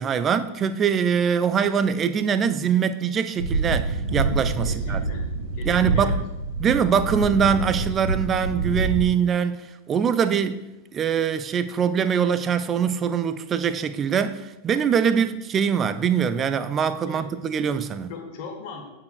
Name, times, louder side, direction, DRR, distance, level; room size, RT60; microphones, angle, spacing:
voice 1, 0.0-5.0 5.7-6.2 6.6-9.6 9.9-10.6 10.9-18.1, right 7 dB, 25° right, 0.3 m, -23 dB
sound 1, 3.4-9.1, right 3 dB, 45° right, 2.2 m, -26 dB
voice 2, 4.6-5.2 5.5-6.2 17.0-17.3 18.1-18.9, left 5 dB, 45° left, 1.1 m, -38 dB
9.3 x 4.6 x 2.3 m
figure-of-eight pair, 90°, 0 cm